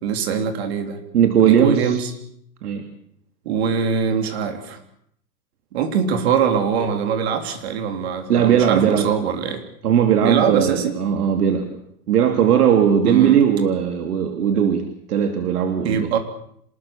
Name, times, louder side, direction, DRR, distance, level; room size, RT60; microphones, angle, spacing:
voice 1, 0.0-1.0 1.4-2.1 3.4-4.8 5.7-9.6 10.2-10.9 13.0-13.4 15.8-16.2, right 7 dB, 40° right, 8 dB, 3.3 m, -22 dB
voice 2, 1.1-2.0 2.6-2.8 8.3-9.1 9.8-11.7 12.1-14.8 15.1-16.1, right 8 dB, 70° right, 6 dB, 2.9 m, -18 dB
26.0 x 20.5 x 7.2 m, 0.69 s
supercardioid pair, 180°, 48 cm